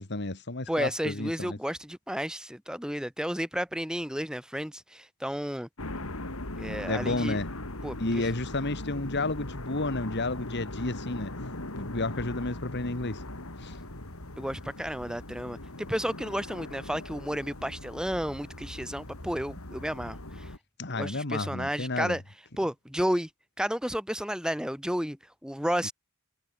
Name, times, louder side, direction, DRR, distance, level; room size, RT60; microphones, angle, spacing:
voice 1, 0.0-1.6 6.9-7.5 8.0-11.4 11.8-13.2 13.6-13.8 20.8-22.2, left 2 dB, 55° left, 1.9 m, -31 dB
voice 2, 0.7-5.7 6.6-7.4 7.8-8.3 14.4-20.5 20.9-22.2 22.6-23.3 23.6-25.9, equal, 5° right, 4.7 m, -32 dB
sound 1, 5.8-20.6, left 1 dB, 75° left, 3.5 m, -40 dB
head